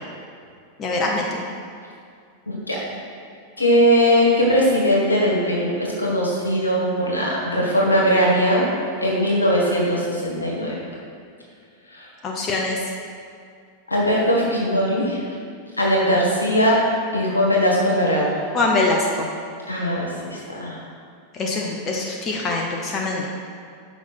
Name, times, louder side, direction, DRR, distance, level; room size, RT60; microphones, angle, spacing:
voice 1, 0.8-1.4 12.2-12.8 18.5-19.3 21.3-23.3, left 2 dB, 30° left, -1 dB, 0.8 m, -23 dB
voice 2, 2.5-2.8 3.6-5.7 6.0-8.6 9.0-10.8 11.9-12.1 13.9-15.2 15.8-16.8 17.1-18.3 19.7-20.8, equal, 80° left, -4 dB, 1.7 m, -20 dB
6.0 x 5.6 x 5.9 m, 2.3 s
figure-of-eight pair, 90°, 0 cm